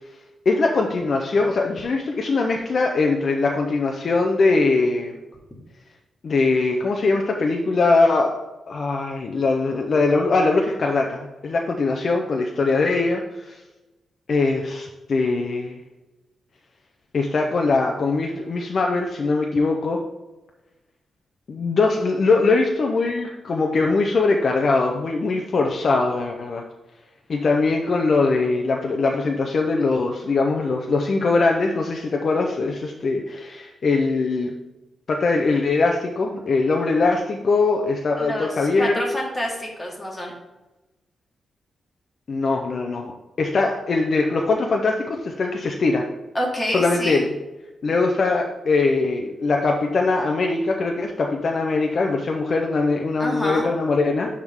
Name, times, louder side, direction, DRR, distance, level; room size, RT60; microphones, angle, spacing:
voice 1, 0.5-5.1 6.2-8.3 8.7-13.6 14.3-15.8 17.1-20.0 21.5-26.6 27.3-34.5 35.1-38.9 42.3-43.1 43.4-46.0 46.7-47.3 47.8-54.3, left 3 dB, 45° left, 1 dB, 0.6 m, -21 dB
voice 2, 38.2-40.3 46.3-47.2 53.2-53.7, equal, 15° left, -1 dB, 1.8 m, -27 dB
10.5 x 3.6 x 3.6 m, 1.0 s
wide cardioid pair, 125°, 0 cm